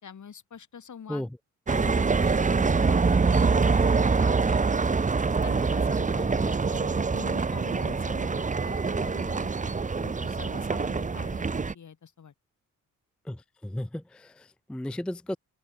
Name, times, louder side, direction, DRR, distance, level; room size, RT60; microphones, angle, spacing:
voice 1, 0.0-1.3 1.7-3.6 4.0-4.9 5.4-12.3, left 7 dB, 60° left, 4.5 m, -45 dB
sound 1, 1.7-11.7, right 4 dB, 25° right, 0.8 m, -25 dB
voice 2, 6.2-6.6 13.3-15.4, left 1 dB, 5° left, 0.4 m, -35 dB
open air
cardioid pair, 75°, 33 cm